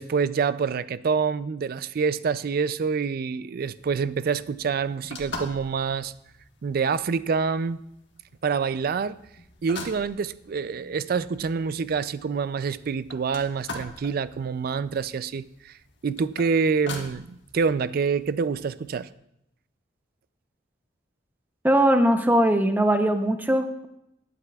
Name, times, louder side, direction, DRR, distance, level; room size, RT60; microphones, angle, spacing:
voice 1, 0.0-6.1 6.6-7.8 8.4-9.2 9.6-15.7 16.0-19.1, right 5 dB, 50° right, 16 dB, 0.4 m, -26 dB
sound 1, 3.8-19.1, left 2 dB, 65° left, 1.4 m, -44 dB
voice 2, 21.6-23.9, right 1 dB, 10° right, 7 dB, 0.7 m, -20 dB
20.5 x 8.3 x 2.3 m, 0.81 s
head